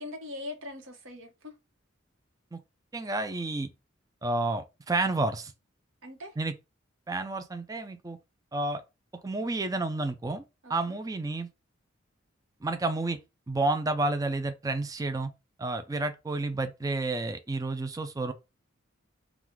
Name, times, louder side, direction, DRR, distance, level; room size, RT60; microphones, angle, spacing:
voice 1, 0.0-1.6 6.0-6.4 10.6-11.0, left 2 dB, 80° right, 1.1 m, -41 dB
voice 2, 2.9-3.7 4.2-5.5 6.4-6.5 7.1-8.2 8.5-8.8 9.2-10.4 10.7-11.5 12.6-13.2 13.5-15.3 15.6-18.3, right 2 dB, 15° right, 0.4 m, -30 dB
3.8 x 2.4 x 4.5 m
head